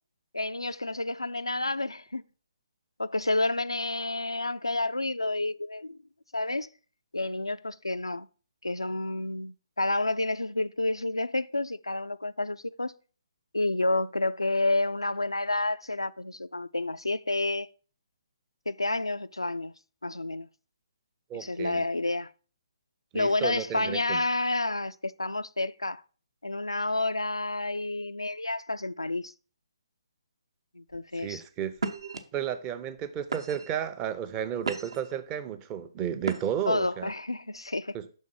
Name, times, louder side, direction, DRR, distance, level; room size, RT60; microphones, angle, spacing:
voice 1, 0.3-2.2 3.0-6.0 6.3-6.7 7.1-8.3 8.6-12.9 13.5-17.7 18.7-19.7 20.0-20.5 21.3-22.3 23.1-26.0 26.4-29.3 30.8-31.4 36.7-38.0, left 2 dB, 90° left, 0.3 m, -29 dB
voice 2, 21.3-21.8 23.1-24.2 31.2-31.7 32.3-37.1 37.9-38.1, right 9 dB, 20° right, 0.5 m, -33 dB
sound 1, 30.9-31.2 31.8-32.2 32.9-33.0 33.3-33.8 34.3-35.1 36.2-36.7, right 4 dB, 65° right, 0.8 m, -35 dB
6.3 x 3.6 x 5.7 m
figure-of-eight pair, 135°, 3 cm